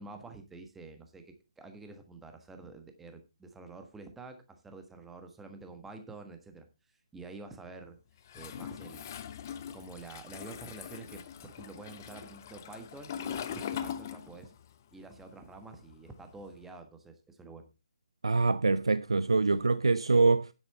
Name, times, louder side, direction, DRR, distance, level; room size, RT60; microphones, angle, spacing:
voice 1, 0.0-8.0 8.3-9.2 9.7-14.5 14.9-17.7, right 3 dB, 5° right, 1.4 m, -48 dB
Toilet flush, 8.3-14.7 15.0-16.6, left 8 dB, 35° left, 0.8 m, -41 dB
voice 2, 18.2-20.5, right 3 dB, 70° right, 0.4 m, -25 dB
9.9 x 8.1 x 4.2 m
figure-of-eight pair, 140°, 3 cm